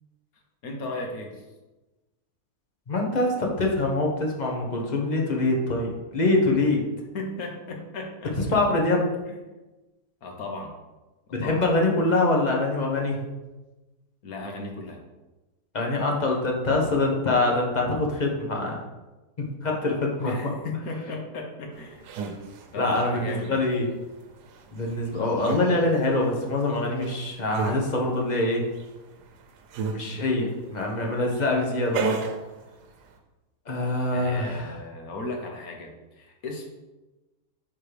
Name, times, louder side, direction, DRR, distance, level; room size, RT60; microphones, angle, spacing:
voice 1, 0.6-1.4 7.1-8.6 9.3-9.4 10.2-10.7 11.4-11.7 14.2-15.0 20.2-22.0 22.7-23.8 34.1-35.9 36.1-36.7, left 2 dB, 65° left, 2 dB, 1.4 m, -36 dB
voice 2, 2.9-6.8 8.5-9.1 11.3-13.2 15.7-18.8 19.4-20.3 22.8-23.9 24.7-28.7 29.9-32.2 33.7-34.7, left 2 dB, 35° left, 0 dB, 0.9 m, -24 dB
sound 1, 21.7-33.2, right 5 dB, 85° right, 1.3 m, -36 dB
8.9 x 3.8 x 3.3 m, 1.1 s
omnidirectional pair, 1.7 m